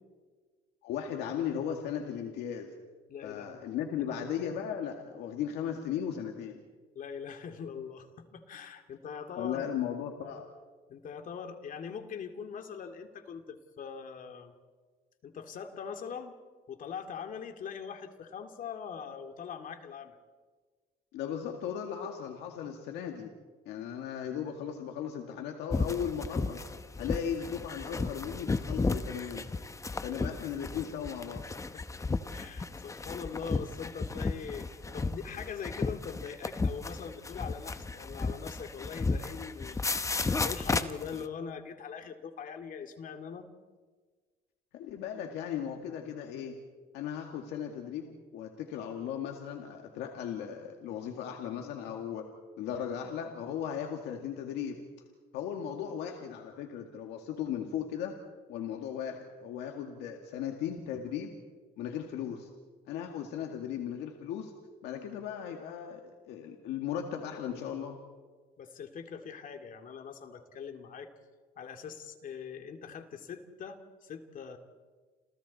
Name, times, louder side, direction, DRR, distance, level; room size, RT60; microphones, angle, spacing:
voice 1, 0.8-2.7 3.2-6.6 9.4-10.5 21.1-23.3 23.7-26.7 27.0-29.4 30.0-31.5 44.7-46.6 46.9-52.3 52.6-54.8 55.3-58.2 58.5-61.3 61.8-62.5 62.9-64.5 64.8-66.0 66.3-68.0, left 8 dB, 85° left, 3 dB, 2.1 m, -37 dB
voice 2, 3.1-4.0 6.9-9.6 10.9-14.5 15.2-16.4 16.7-20.2 30.1-30.4 32.3-43.5 68.6-71.1 71.6-74.6, left 6 dB, 55° left, 6 dB, 2.5 m, -42 dB
sound 1, 25.7-41.2, left 3 dB, 20° left, 0.9 m, -33 dB
29.5 x 28.5 x 4.2 m, 1.4 s
cardioid pair, 110°, 17 cm